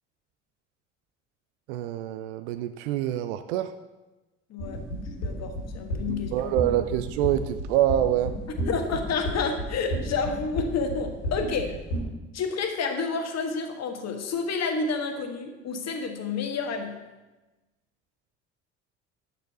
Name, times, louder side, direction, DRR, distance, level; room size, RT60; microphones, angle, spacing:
voice 1, 1.7-3.8 6.3-8.4, right 12 dB, 70° right, 11 dB, 0.6 m, -26 dB
voice 2, 4.5-4.9 5.2-6.5 8.7-11.7 12.3-17.0, left 4 dB, 45° left, 5 dB, 1.6 m, -29 dB
sound 1, 4.6-12.0, equal, 80° left, 3.5 m, -32 dB
9.5 x 6.8 x 6.1 m, 1.1 s
figure-of-eight pair, 55°, 36 cm